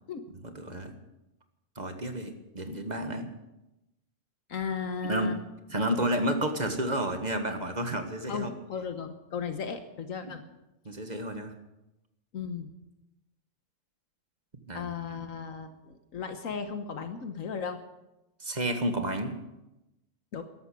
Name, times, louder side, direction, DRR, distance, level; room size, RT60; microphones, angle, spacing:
voice 1, 0.4-0.9 1.7-3.3 5.0-5.4 5.7-8.5 10.2-10.3 10.8-11.5 14.7-14.8 15.1-15.2 18.4-19.4, right 1 dB, 30° right, 6 dB, 1.7 m, -31 dB
voice 2, 4.5-5.4 8.3-10.4 12.3-12.7 14.7-17.8 20.3-20.4, left 6 dB, 80° left, 8 dB, 1.5 m, -35 dB
14.0 x 11.5 x 8.5 m, 0.95 s
omnidirectional pair, 1.4 m